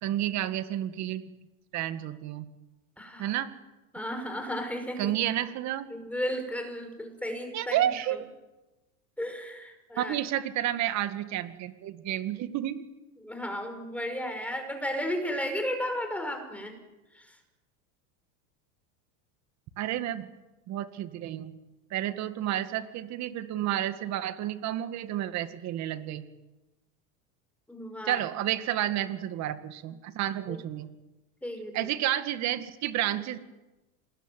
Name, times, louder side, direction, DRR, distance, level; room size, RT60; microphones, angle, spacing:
voice 1, 0.0-1.2 1.7-2.5 3.2-3.5 5.0-5.9 7.5-8.2 10.0-12.8 19.8-20.3 20.7-21.5 21.9-26.2 28.1-30.9 31.7-33.4, right 12 dB, 40° right, 11 dB, 2.1 m, -30 dB
voice 2, 3.0-3.4 3.9-5.2 5.9-8.2 9.2-10.2 13.2-16.7 17.1-17.4 27.7-28.2 30.5-30.6 31.4-31.9, equal, 5° left, 5 dB, 5.3 m, -34 dB
27.5 x 20.5 x 9.3 m, 1.1 s
supercardioid pair, 140°, 42 cm